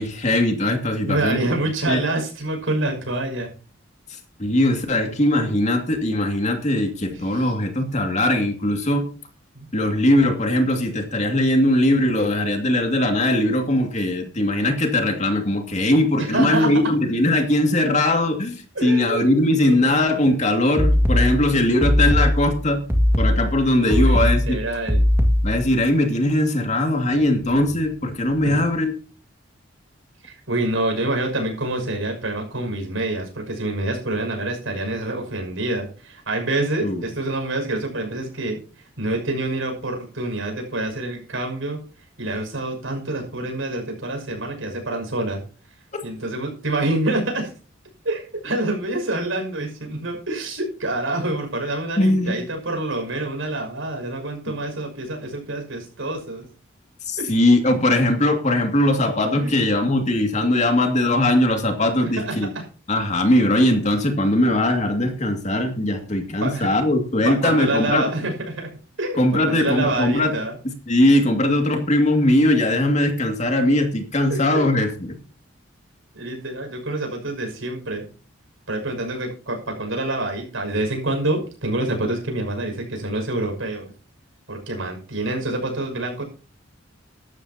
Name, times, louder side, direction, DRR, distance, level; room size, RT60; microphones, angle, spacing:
voice 1, 0.0-1.4 1.9-2.0 4.4-9.1 9.7-22.8 23.2-24.6 25.4-28.9 36.8-37.0 52.0-52.3 57.1-62.5 62.9-68.1 69.2-70.3 70.9-75.2, left 1 dB, 35° left, 4 dB, 2.4 m, -20 dB
voice 2, 1.1-3.5 5.3-5.4 7.1-7.5 9.5-9.7 16.2-16.7 18.7-20.4 23.8-25.0 28.4-28.6 30.2-38.6 39.0-41.8 42.2-45.4 46.0-47.5 48.0-56.4 57.2-57.3 59.3-59.6 62.0-62.6 63.2-63.5 66.4-66.7 67.2-68.7 69.0-70.5 74.3-74.7 76.1-78.1 78.7-83.9 84.5-86.2, right 2 dB, 80° right, 3 dB, 6.2 m, -27 dB
sound 1, 20.8-25.8, left 1 dB, 10° right, 1.9 m, -19 dB
15.0 x 12.5 x 2.9 m, 0.37 s
head